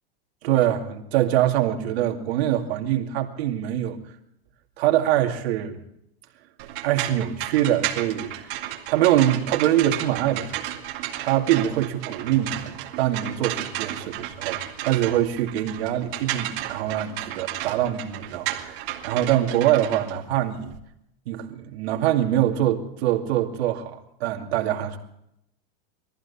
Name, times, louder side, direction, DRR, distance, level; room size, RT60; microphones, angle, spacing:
voice 1, 0.4-4.0 4.8-5.8 6.8-8.6 8.9-10.8 11.2-20.8 21.3-25.0, right 12 dB, 75° right, 3 dB, 2.5 m, -24 dB
sound 1, 6.6-20.8, right 13 dB, 60° right, 2.3 m, -33 dB
22.0 x 14.5 x 4.2 m, 0.80 s
supercardioid pair, 155°, 32 cm